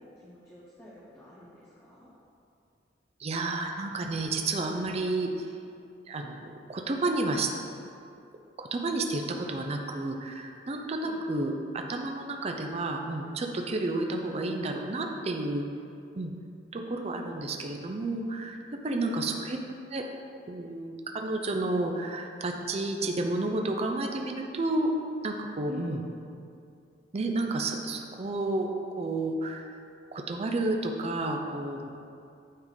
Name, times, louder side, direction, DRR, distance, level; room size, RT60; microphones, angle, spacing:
voice 1, 0.0-2.1 11.0-11.2 18.9-19.2 25.7-26.0, left 2 dB, 15° left, -7 dB, 0.8 m, -46 dB
voice 2, 3.2-5.5 6.1-7.5 8.6-15.7 16.2-16.3 16.7-18.6 18.8-19.6 19.9-20.0 20.5-24.9 25.2-26.0 27.1-28.7 29.0-29.6 30.1-32.1, right 2 dB, 35° right, 3 dB, 0.5 m, -31 dB
8.8 x 3.6 x 3.9 m, 2.5 s
head